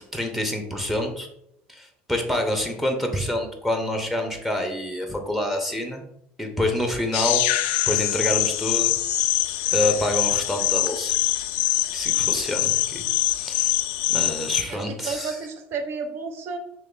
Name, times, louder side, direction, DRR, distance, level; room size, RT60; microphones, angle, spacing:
voice 1, 0.1-1.3 1.7-6.0 6.4-7.4 7.9-8.9 9.7-11.2 11.9-13.0 13.3-13.8 14.1-15.4, left 1 dB, 5° right, 3 dB, 0.8 m, -27 dB
sound 1, 7.1-14.6, left 15 dB, 80° left, 0.3 m, -24 dB
voice 2, 14.7-16.6, right 4 dB, 50° right, 5 dB, 0.8 m, -32 dB
3.3 x 3.1 x 3.9 m, 0.75 s
supercardioid pair, 100°, 5 cm